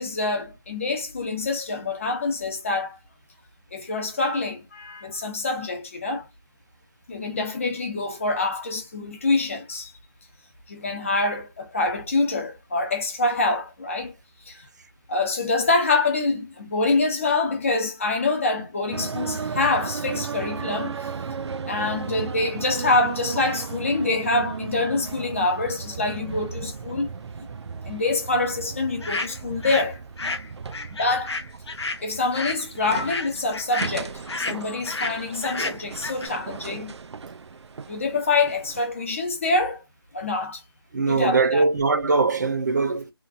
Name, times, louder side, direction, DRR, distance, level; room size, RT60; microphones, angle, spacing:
voice 1, 0.0-3.0 3.7-6.3 7.1-9.9 10.7-14.1 14.5-14.7 15.1-21.1 21.7-27.1 27.8-30.0 30.9-31.3 32.0-36.9 37.9-39.8 40.1-40.6 41.1-41.7, left 3 dB, 30° left, 0.8 m, -25 dB
sound 1, 18.9-38.8, right 5 dB, 85° right, 0.4 m, -35 dB
sound 2, 29.0-29.9 30.2-36.3, left 3 dB, 75° left, 0.8 m, -31 dB
voice 2, 40.9-43.1, right 3 dB, 40° right, 0.8 m, -21 dB
2.9 x 2.5 x 2.5 m
figure-of-eight pair, 170°, 14 cm